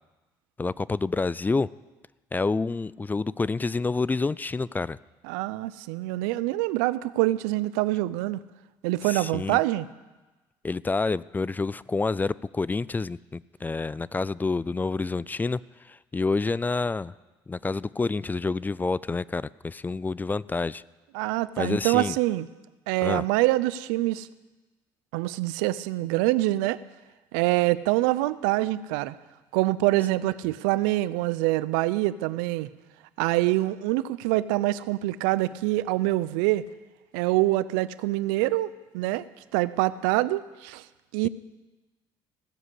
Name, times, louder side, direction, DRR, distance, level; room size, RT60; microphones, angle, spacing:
voice 1, 0.6-1.7 2.3-5.0 9.0-9.6 10.6-15.6 15.8-17.1 17.5-20.8 21.6-22.2 23.0-23.2, left 3 dB, 20° left, 21 dB, 0.3 m, -28 dB
voice 2, 5.3-8.4 8.8-9.9 21.1-22.5 22.9-24.3 25.1-26.8 27.3-29.1 29.5-32.7 33.2-36.6 37.1-39.3 39.5-40.8 41.1-41.3, right 18 dB, 85° right, 17 dB, 0.4 m, -25 dB
16.0 x 7.3 x 8.2 m, 1.2 s
supercardioid pair, 70°, 10 cm